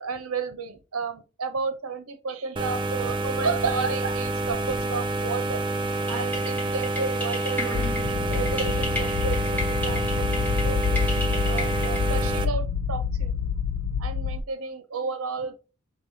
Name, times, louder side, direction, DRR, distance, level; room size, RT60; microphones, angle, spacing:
voice 1, 0.0-5.6 6.1-13.3 14.0-15.5, right 5 dB, 70° right, 0.8 m, -32 dB
sound 1, 2.6-12.5, right 2 dB, 20° right, 0.4 m, -28 dB
sound 2, 6.1-12.2, left 1 dB, 10° left, 1.5 m, -35 dB
sound 3, 7.7-14.4, left 6 dB, 75° left, 0.4 m, -27 dB
5.3 x 3.3 x 2.7 m
head